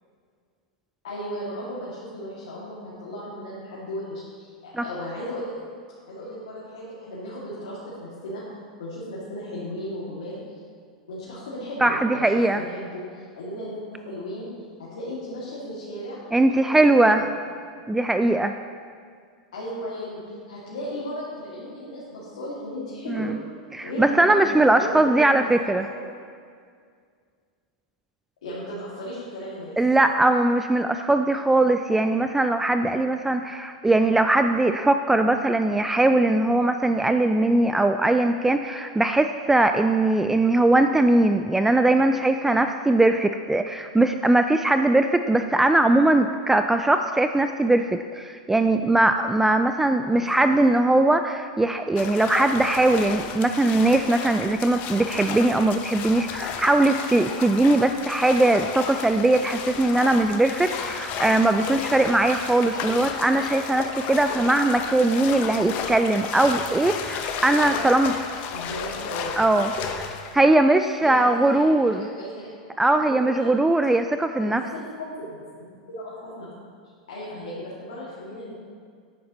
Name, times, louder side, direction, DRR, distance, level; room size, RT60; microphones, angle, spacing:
voice 1, 1.0-5.5 6.1-8.4 8.8-10.4 11.1-14.5 14.8-16.2 16.6-16.8 17.0-17.3 19.5-23.3 23.8-26.2 28.4-29.8 50.1-50.6 67.5-67.8 68.5-69.4 71.0-72.3 72.9-73.0 73.3-73.5 74.4-76.5 77.1-78.6, equal, 80° left, -8 dB, 2.2 m, -35 dB
voice 2, 11.8-12.6 16.3-17.2 17.9-18.5 23.1-23.4 23.7-25.9 29.8-68.1 69.4-69.7 70.0-72.1 72.8-74.6, right 2 dB, 10° right, 8 dB, 0.3 m, -20 dB
sound 1, 52.0-70.4, left 7 dB, 45° left, 0.7 m, -33 dB
10.5 x 8.3 x 3.0 m, 2.1 s
hypercardioid pair, 105°, 4 cm